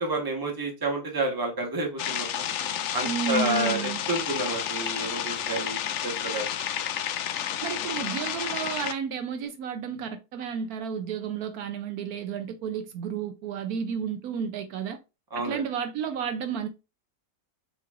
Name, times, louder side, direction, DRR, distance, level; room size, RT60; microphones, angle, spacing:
voice 1, 0.0-2.3 2.9-3.8 4.1-6.5 15.3-15.6, right 2 dB, 15° right, 1.1 m, -29 dB
sound 1, 2.0-8.9, left 10 dB, 70° left, 0.7 m, -31 dB
voice 2, 3.0-4.1 7.6-15.0 15.3-16.7, right 7 dB, 75° right, 1.0 m, -32 dB
Meow, 3.3-4.0 4.7-4.8 5.3-5.4 9.4-9.5, right 2 dB, 45° right, 1.6 m, -42 dB
6.6 x 3.1 x 2.3 m
omnidirectional pair, 1.6 m